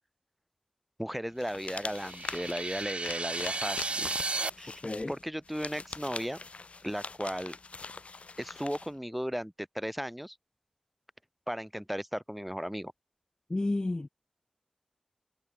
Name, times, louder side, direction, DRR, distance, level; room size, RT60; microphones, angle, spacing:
voice 1, 1.0-4.1 4.6-4.8 5.1-6.4 6.8-7.6 8.4-10.4 11.5-12.9, equal, 5° right, 3.9 m, -35 dB
sound 1, 1.4-8.9, left 4 dB, 75° left, 1.3 m, -43 dB
sound 2, 1.7-4.5, right 3 dB, 60° right, 2.0 m, -34 dB
voice 2, 4.8-5.1 13.5-14.1, left 2 dB, 35° left, 1.5 m, -31 dB
wide cardioid pair, 60°, 2 cm